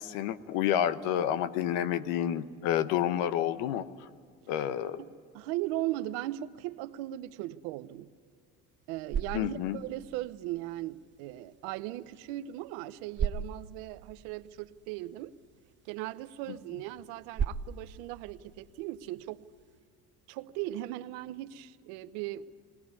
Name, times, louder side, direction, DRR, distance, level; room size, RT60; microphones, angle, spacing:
voice 1, 0.0-3.9 4.5-5.0 9.3-9.8, left 10 dB, 80° left, 14 dB, 1.1 m, -29 dB
voice 2, 5.0-8.1 8.9-15.3 15.8-19.5 20.3-22.5, right 15 dB, 80° right, 14 dB, 0.9 m, -38 dB
sound 1, 8.7-19.8, right 6 dB, 35° right, 0.9 m, -40 dB
20.0 x 19.0 x 9.6 m, 2.2 s
supercardioid pair, 90°, 34 cm